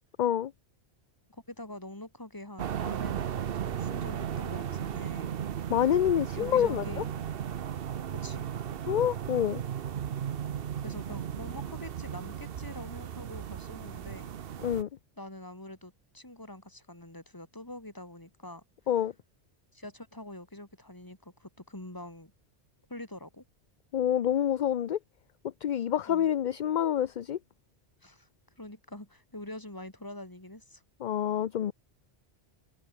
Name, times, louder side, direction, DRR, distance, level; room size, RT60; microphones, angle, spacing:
voice 1, 0.2-0.5 5.7-6.8 8.9-9.6 14.6-14.9 18.9-19.1 23.9-25.0 25.6-27.4 31.0-31.7, left 10 dB, 50° left, 0.6 m, -27 dB
voice 2, 1.3-5.4 6.3-7.1 8.1-8.4 10.8-14.3 15.2-18.6 19.7-22.3 22.9-23.4 26.1-26.3 28.0-28.3 28.6-30.8, left 1 dB, 20° left, 2.7 m, -45 dB
sound 1, 2.6-14.8, right 9 dB, 60° right, 0.9 m, -35 dB
omnidirectional pair, 1.1 m